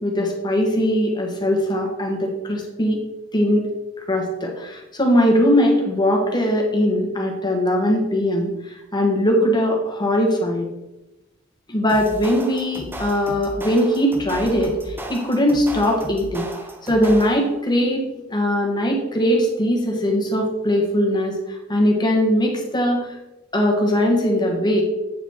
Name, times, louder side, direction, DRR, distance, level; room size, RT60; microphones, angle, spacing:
voice 1, 0.0-3.0 3.3-3.7 4.1-8.5 8.9-10.7 11.7-16.5 16.8-21.3 21.7-23.1 23.5-24.8, equal, 20° left, 1 dB, 1.4 m, -20 dB
sound 1, 11.9-17.6, right 1 dB, 10° right, 0.6 m, -35 dB
8.7 x 4.0 x 4.5 m, 0.99 s
head